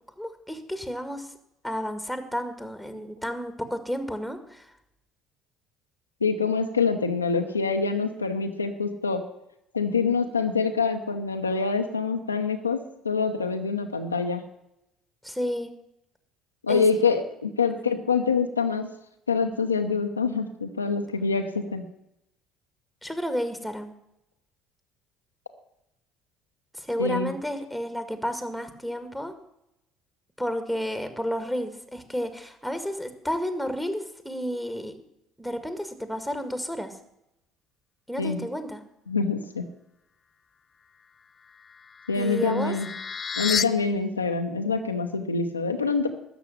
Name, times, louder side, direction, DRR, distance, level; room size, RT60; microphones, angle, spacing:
voice 1, 0.2-1.3 1.6-4.7 15.2-15.7 16.7-16.8 17.7-17.9 23.0-23.9 26.8-29.3 30.4-34.9 35.4-36.9 38.1-38.8 42.1-42.7, equal, ahead, 9 dB, 2.1 m, -31 dB
voice 2, 6.2-9.2 9.7-14.4 16.6-18.9 19.3-21.8 27.0-27.3 38.2-38.5 39.1-39.6 42.1-42.9 43.4-46.1, left 5 dB, 90° left, 4 dB, 0.9 m, -25 dB
sound 1, 41.4-43.6, left 6 dB, 35° left, 0.6 m, -32 dB
13.0 x 6.8 x 9.9 m, 0.84 s
figure-of-eight pair, 55°, 0 cm